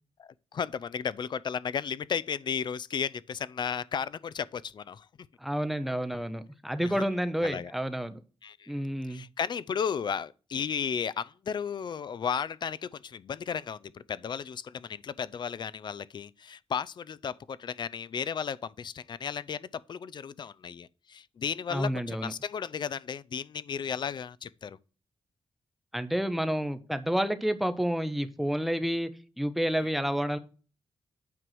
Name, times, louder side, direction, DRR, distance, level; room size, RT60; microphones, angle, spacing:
voice 1, 0.2-5.1 6.8-7.0 7.4-7.7 8.4-8.8 9.1-24.8 29.8-29.9, left 7 dB, 50° left, 0.5 m, -34 dB
voice 2, 5.4-8.2 8.7-9.2 21.7-22.3 25.9-29.1 29.4-30.4, equal, ahead, 0.9 m, -29 dB
9.2 x 4.7 x 7.7 m
wide cardioid pair, 150°, 10 cm